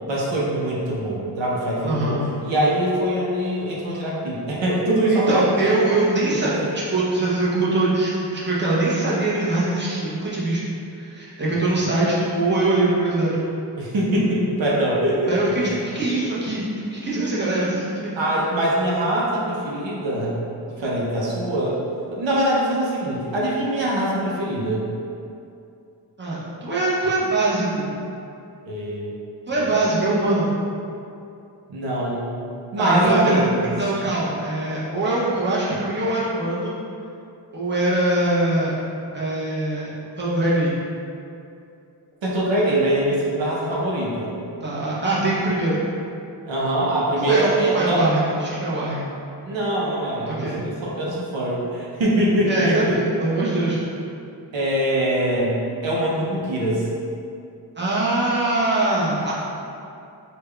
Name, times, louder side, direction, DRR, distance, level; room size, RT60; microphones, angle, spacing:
voice 1, 0.1-5.7 6.4-6.5 13.8-15.8 18.2-20.4 20.8-21.8 22.1-24.8 28.7-29.1 31.7-33.7 42.2-44.3 46.5-48.1 49.4-53.0 54.5-56.9, right 1 dB, 85° right, -5 dB, 0.7 m, -23 dB
voice 2, 1.8-2.3 5.1-10.6 10.9-13.4 15.3-16.6 16.9-18.1 26.2-27.9 29.5-30.5 32.8-36.8 37.5-38.7 39.1-39.9 40.2-40.8 44.6-45.8 47.2-49.1 50.3-50.6 52.5-53.8 57.8-59.3, right 2 dB, 25° right, -8 dB, 0.9 m, -22 dB
3.5 x 2.3 x 3.3 m, 2.6 s
cardioid pair, 55°, 44 cm